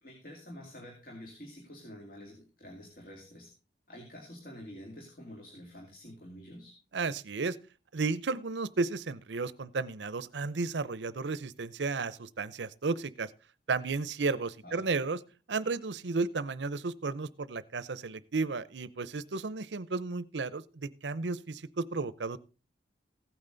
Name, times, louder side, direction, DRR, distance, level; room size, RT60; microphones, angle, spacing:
voice 1, 0.0-3.5 3.9-6.7 14.6-14.8, equal, 50° left, 0 dB, 2.7 m, -48 dB
voice 2, 6.9-7.6 7.9-13.3 13.7-15.2 15.5-22.4, right 4 dB, 90° right, 18 dB, 0.7 m, -33 dB
15.5 x 9.1 x 3.9 m, 0.35 s
head